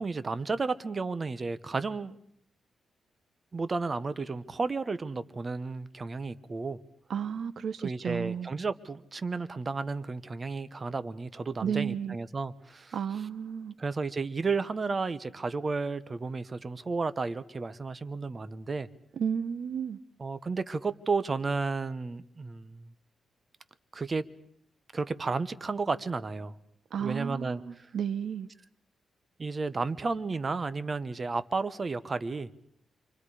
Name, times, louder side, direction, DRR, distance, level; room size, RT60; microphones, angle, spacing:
voice 1, 0.0-2.2 3.5-6.8 7.8-12.9 13.8-18.9 20.2-22.9 23.9-24.2 24.9-26.5 27.0-27.9 29.4-32.5, right 4 dB, 35° right, 1.1 m, -32 dB
voice 2, 7.1-8.5 11.6-12.2 12.9-13.7 19.2-20.0 26.9-28.5, right 7 dB, 65° right, 0.8 m, -33 dB
29.0 x 25.0 x 5.0 m
cardioid pair, 95°, 0 cm